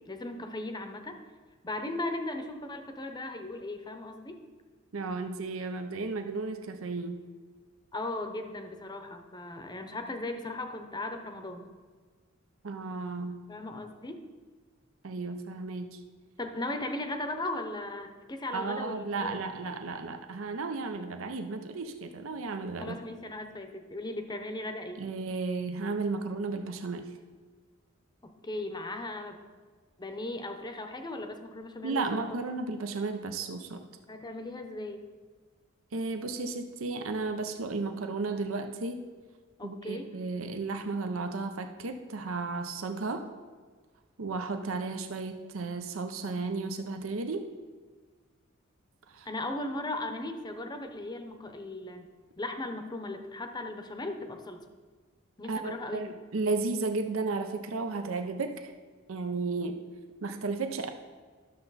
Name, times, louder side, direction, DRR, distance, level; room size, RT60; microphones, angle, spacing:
voice 1, 0.1-1.2 1.6-4.4 7.9-11.7 13.5-14.2 16.4-19.4 22.8-25.0 28.2-29.5 30.0-32.3 34.1-35.0 39.6-40.1 49.3-52.1 52.4-54.6 55.4-56.2, left 2 dB, 20° left, 6 dB, 0.7 m, -37 dB
voice 2, 4.9-7.2 12.6-13.4 15.0-16.0 18.5-23.0 25.0-27.1 31.8-33.9 35.9-39.0 39.6-43.2 44.2-47.4 49.1-49.3 55.5-58.7 59.1-59.8 60.2-60.9, right 3 dB, 70° right, 7 dB, 0.6 m, -34 dB
11.5 x 6.8 x 4.0 m, 1.5 s
head